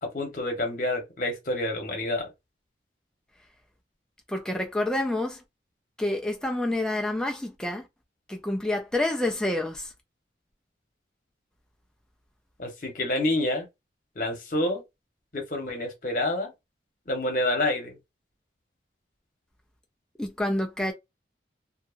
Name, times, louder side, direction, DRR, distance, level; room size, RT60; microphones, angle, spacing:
voice 1, 0.0-2.3 12.6-13.7 14.1-14.8 15.3-16.5 17.1-18.0, left 1 dB, 50° left, 1.1 m, -28 dB
voice 2, 4.3-5.4 6.0-7.9 8.3-9.9 20.2-20.9, left 1 dB, 5° left, 0.4 m, -28 dB
2.7 x 2.3 x 2.5 m
head